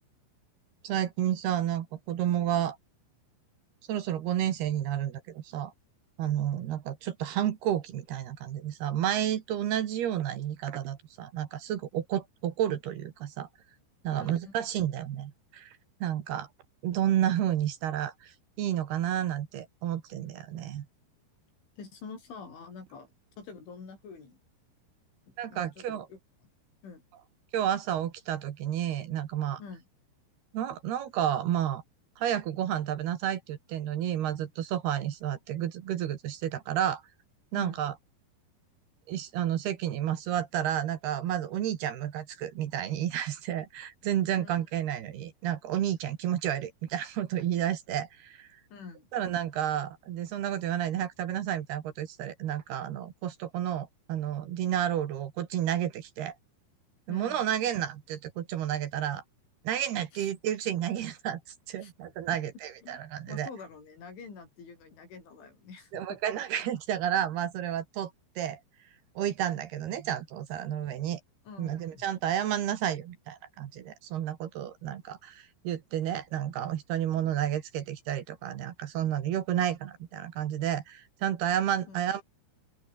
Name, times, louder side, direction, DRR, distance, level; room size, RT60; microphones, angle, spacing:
voice 1, 0.8-2.8 3.9-5.7 6.2-13.5 14.0-16.5 16.8-20.9 25.4-26.1 27.5-29.6 30.5-31.8 32.2-37.0 37.5-37.9 39.1-48.5 49.1-56.4 57.1-59.2 59.6-61.4 61.7-63.5 65.9-68.1 68.4-68.6 69.2-71.2 71.6-82.2, right 11 dB, 65° right, 3.4 m, -31 dB
voice 2, 14.1-14.7 20.5-20.6 21.8-23.1 23.4-24.4 25.3-26.2 26.8-27.0 29.6-29.8 37.5-37.8 44.4-44.5 48.7-49.1 57.1-57.7 60.1-60.3 61.8-61.9 62.8-66.2 71.5-72.0 81.9-82.0, left 5 dB, 80° left, 9.7 m, -47 dB
open air
omnidirectional pair, 5.4 m